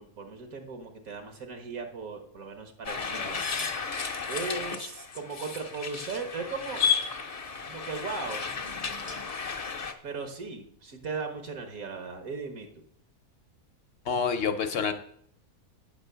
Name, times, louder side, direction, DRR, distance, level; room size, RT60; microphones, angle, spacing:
voice 1, 0.0-3.4 4.3-6.8 7.6-8.4 10.0-12.8, right 4 dB, 80° right, 6 dB, 1.6 m, -37 dB
sound 1, 2.8-9.9, left 6 dB, 35° left, 0.6 m, -33 dB
voice 2, 14.1-14.9, left 6 dB, 55° left, 8 dB, 0.9 m, -27 dB
8.8 x 5.3 x 6.7 m, 0.65 s
omnidirectional pair, 1.5 m